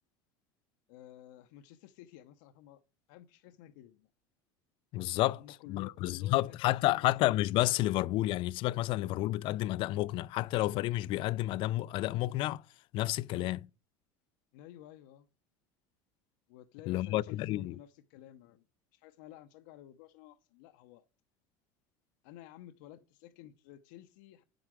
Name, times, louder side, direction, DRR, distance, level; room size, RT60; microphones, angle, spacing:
voice 1, 0.9-2.8 3.1-4.1 5.4-6.5 6.8-7.0 14.5-15.3 16.5-18.7 18.9-21.1 22.2-24.4, left 12 dB, 75° left, 0.8 m, -53 dB
voice 2, 4.9-5.4 5.7-12.6 12.9-13.6 16.9-17.8, left 16 dB, 55° left, 0.4 m, -30 dB
8.6 x 7.9 x 4.7 m
supercardioid pair, 110°, 10 cm